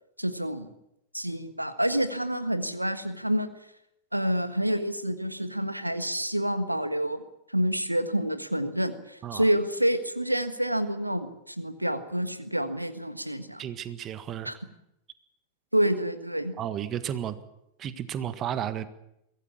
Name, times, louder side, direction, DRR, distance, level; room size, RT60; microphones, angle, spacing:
voice 1, 0.2-0.7 1.1-3.5 4.1-13.7 14.4-14.5 15.7-16.5, equal, 90° right, 11 dB, 1.5 m, -28 dB
voice 2, 13.6-14.5 16.6-17.4 17.8-18.9, right 10 dB, 30° right, 12 dB, 1.6 m, -33 dB
23.5 x 17.0 x 8.6 m, 0.81 s
figure-of-eight pair, 90°, 0 cm